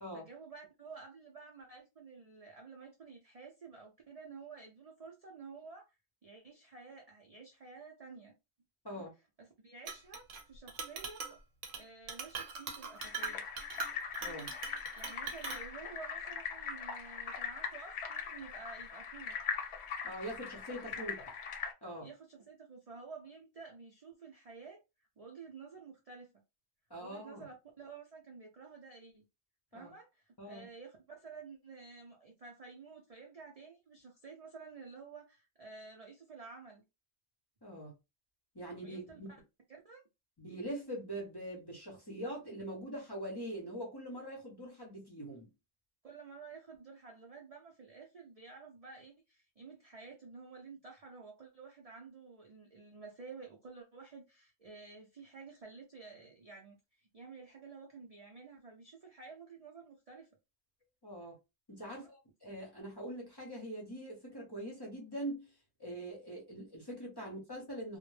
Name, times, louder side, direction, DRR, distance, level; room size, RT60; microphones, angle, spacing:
voice 1, 0.1-6.0 6.2-8.3 8.9-9.1 9.4-11.4 11.8-13.5 15.0-19.4 21.1-21.2 22.0-24.8 25.2-26.3 27.0-29.3 29.7-36.8 38.8-39.3 39.8-40.0 46.0-60.3 61.9-62.1, right 4 dB, 55° right, 0.4 m, -51 dB
Chink clink, 9.9-10.4 10.7-11.4 11.6-11.8 12.1-15.6, right 5 dB, 85° right, 1.0 m, -41 dB
sound 1, 13.0-21.7, left 6 dB, 65° left, 0.8 m, -41 dB
voice 2, 20.0-21.1 21.8-22.1 26.9-27.4 29.7-29.9 30.4-30.6 37.6-38.0 38.5-39.3 40.4-45.5 61.0-61.4 61.7-65.5 65.8-68.0, right 1 dB, 25° left, 0.6 m, -43 dB
2.1 x 2.0 x 3.1 m
omnidirectional pair, 1.3 m